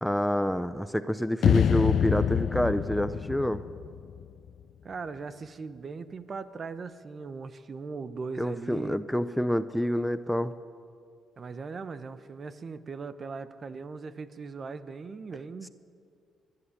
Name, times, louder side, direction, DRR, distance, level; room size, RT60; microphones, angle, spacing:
voice 1, 0.0-3.6 8.4-10.5, equal, ahead, 12 dB, 0.6 m, -27 dB
sound 1, 1.4-4.6, left 8 dB, 60° left, 0.5 m, -26 dB
voice 2, 4.8-9.0 11.4-15.7, right 4 dB, 40° right, 13 dB, 1.0 m, -39 dB
25.0 x 11.0 x 9.9 m, 2.3 s
cardioid pair, 90°, 0 cm